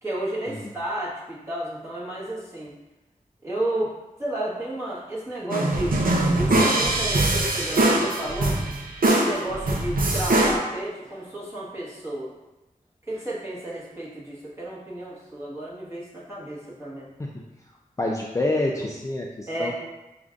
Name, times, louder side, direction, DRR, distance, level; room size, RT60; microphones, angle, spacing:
voice 1, 0.0-2.7 3.4-3.9 4.2-6.0 6.3-8.6 9.0-12.3 13.1-17.1 19.5-19.7, right 1 dB, 20° right, -8 dB, 1.4 m, -32 dB
sound 1, 5.5-10.6, right 2 dB, 75° right, 0.6 m, -22 dB
voice 2, 18.0-19.7, left 2 dB, 20° left, -2 dB, 0.4 m, -27 dB
6.4 x 2.5 x 2.4 m, 1.0 s
wide cardioid pair, 75°, 15 cm